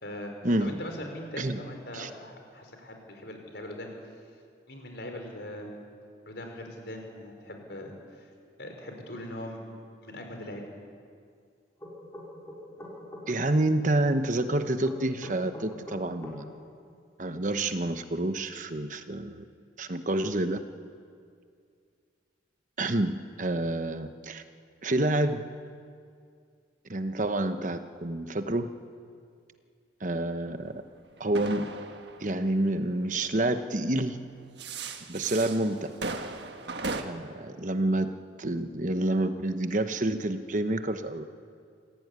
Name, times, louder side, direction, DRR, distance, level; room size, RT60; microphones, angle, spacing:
voice 1, 0.0-0.3 0.6-3.9 4.7-5.7 6.3-8.3 8.6-9.6 10.0-10.6, left 1 dB, 65° left, 3 dB, 4.8 m, -40 dB
sound 1, 11.8-13.2 14.8-16.4, left 1 dB, 15° left, 5.6 m, -42 dB
voice 2, 13.3-16.4 17.2-19.4 19.8-20.6 22.8-24.4 24.8-25.4 26.9-28.7 30.0-30.7 31.2-31.7 32.2-34.2 35.1-35.9 37.0-41.2, right 1 dB, 40° right, 9 dB, 1.0 m, -28 dB
sound 2, 30.7-33.4 34.3-37.0, right 3 dB, 65° right, 1.5 m, -37 dB
27.5 x 16.0 x 9.6 m, 2.3 s
head